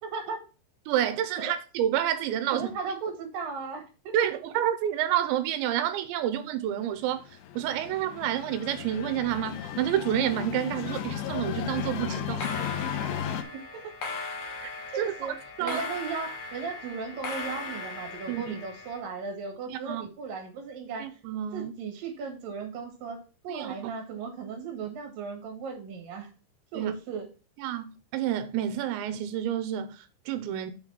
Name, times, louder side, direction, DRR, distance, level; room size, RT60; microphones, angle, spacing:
voice 1, 0.0-0.4 1.4-1.5 2.5-4.1 13.7-13.9 14.9-15.3 15.6-21.1 21.5-26.3 26.7-27.3, right 5 dB, 60° right, 3.1 m, -36 dB
voice 2, 0.9-2.7 4.1-7.2 7.6-12.5 14.6-14.7 15.0-15.8 18.3-18.6 19.7-20.0 21.0-21.7 23.5-23.9 26.7-26.9 27.6-30.7, right 11 dB, 90° right, 3.0 m, -29 dB
sound 1, 7.1-13.4, left 10 dB, 90° left, 3.0 m, -35 dB
sound 2, 9.7-10.6 10.9-11.3 12.2-19.0, left 3 dB, 60° left, 2.0 m, -38 dB
7.4 x 4.0 x 6.0 m
omnidirectional pair, 5.1 m